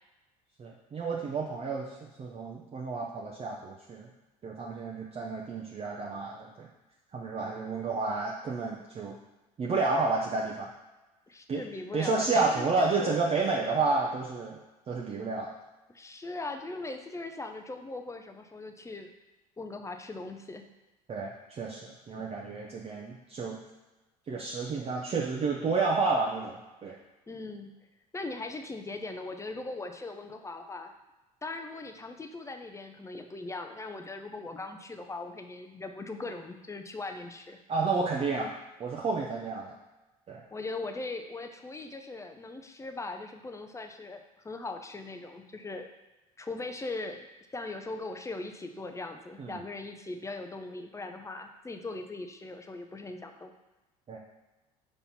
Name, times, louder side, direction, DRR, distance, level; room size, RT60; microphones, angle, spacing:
voice 1, 0.6-4.1 4.4-6.7 7.1-9.1 9.6-10.7 11.5-11.6 11.9-14.6 14.9-15.5 21.1-23.6 24.3-27.0 37.7-38.5 38.8-39.7 40.3-40.4 49.4-49.6 54.1-54.2, right 3 dB, 30° right, -2 dB, 0.8 m, -30 dB
voice 2, 11.3-13.2 15.9-19.1 19.6-20.7 22.1-22.3 27.3-27.7 28.1-30.9 31.4-37.6 40.5-45.9 46.4-47.3 47.5-53.5, left 3 dB, 15° left, 6 dB, 0.7 m, -39 dB
5.5 x 4.2 x 4.3 m, 1.1 s
hypercardioid pair, 75°, 19 cm